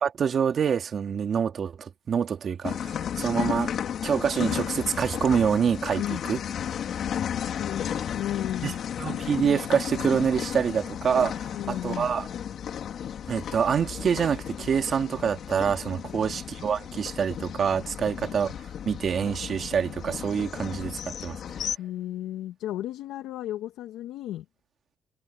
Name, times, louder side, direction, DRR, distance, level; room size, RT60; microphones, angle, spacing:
voice 1, 0.0-3.7 4.0-6.4 8.6-8.7 9.0-12.3 13.3-18.5 18.9-21.4, right 7 dB, 45° right, 2.2 m, -26 dB
sound 1, 2.6-21.8, left 9 dB, 55° left, 3.2 m, -34 dB
voice 2, 7.4-8.8 11.4-12.1 16.0-16.4 18.2-18.3 21.8-24.4, left 13 dB, 75° left, 1.6 m, -34 dB
cardioid pair, 105°, 0 cm